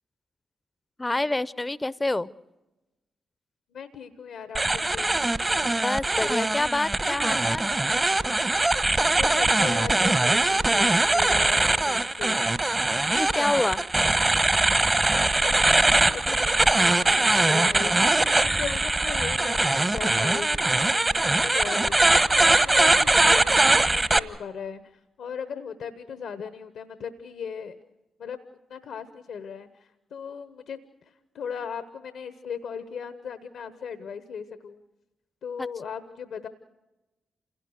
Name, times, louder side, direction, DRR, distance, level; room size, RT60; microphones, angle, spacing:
voice 1, 1.0-2.3 5.8-7.7 13.1-13.8 35.6-35.7, left 2 dB, 25° left, 19 dB, 0.6 m, -27 dB
voice 2, 3.7-5.2 9.2-12.5 15.4-20.5 20.9-27.8 28.2-28.4 28.7-30.8 31.1-34.8 35.4-36.5, left 6 dB, 75° left, 11 dB, 0.9 m, -38 dB
sound 1, 4.6-24.2, right 2 dB, 30° right, 1.1 m, -22 dB
28.0 x 17.0 x 6.4 m, 1.1 s
hypercardioid pair, 40°, 0 cm